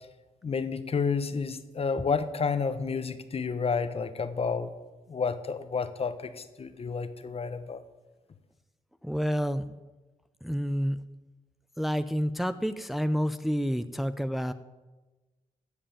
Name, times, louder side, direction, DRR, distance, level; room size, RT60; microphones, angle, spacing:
voice 1, 0.4-4.7 5.1-7.8, left 5 dB, 45° left, 11 dB, 1.1 m, -30 dB
voice 2, 9.0-9.6 10.4-11.0 11.8-14.5, equal, ahead, 11 dB, 0.6 m, -29 dB
15.0 x 5.3 x 8.6 m, 1.2 s
cardioid pair, 60°, 14 cm